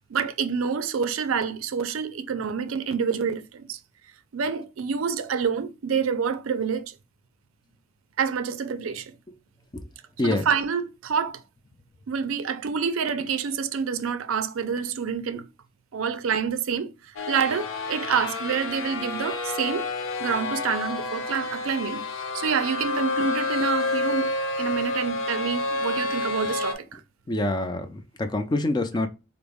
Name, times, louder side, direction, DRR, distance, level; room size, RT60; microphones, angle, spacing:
voice 1, 0.1-3.8 4.3-6.9 8.2-9.1 10.2-11.4 12.1-15.4 15.9-16.9 17.3-19.9 20.2-22.0 22.3-24.3 24.6-26.8, right 6 dB, 75° right, 0.4 m, -27 dB
sound 1, 17.2-26.7, left 2 dB, 70° left, 0.6 m, -29 dB
voice 2, 27.3-29.1, left 2 dB, 20° left, 0.4 m, -26 dB
3.9 x 2.0 x 3.5 m
head